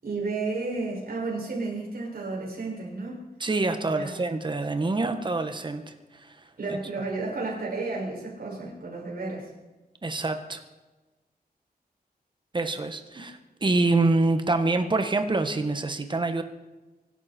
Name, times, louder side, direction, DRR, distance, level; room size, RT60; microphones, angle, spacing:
voice 1, 0.0-3.3 3.9-4.2 6.6-9.5, right 3 dB, 65° right, -2 dB, 6.2 m, -32 dB
voice 2, 3.4-6.3 6.7-6.8 10.0-10.6 12.5-16.4, right 2 dB, 30° right, 8 dB, 1.4 m, -26 dB
24.5 x 12.5 x 4.5 m, 1.1 s
wide cardioid pair, 140°, 16 cm